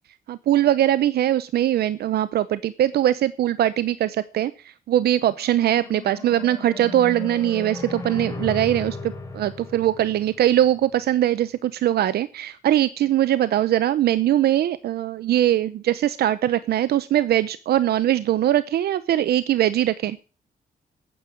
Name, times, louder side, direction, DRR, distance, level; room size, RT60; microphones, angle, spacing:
voice 1, 0.3-4.5 4.9-20.2, right 12 dB, 80° right, 15 dB, 0.7 m, -21 dB
sound 1, 5.3-10.8, left 3 dB, 20° left, 3.1 m, -36 dB
9.6 x 8.4 x 9.1 m, 0.36 s
wide cardioid pair, 145°, 16 cm